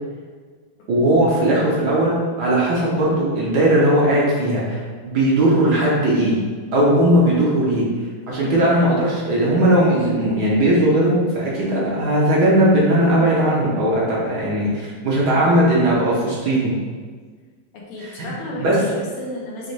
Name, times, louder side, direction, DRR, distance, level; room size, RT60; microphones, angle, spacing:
voice 1, 0.9-6.4 6.7-7.8 8.3-16.8 18.0-18.8, right 1 dB, 60° right, -5 dB, 1.3 m, -18 dB
voice 2, 17.7-19.7, left 1 dB, 90° left, -4 dB, 1.9 m, -34 dB
6.3 x 2.5 x 3.2 m, 1.5 s
omnidirectional pair, 2.4 m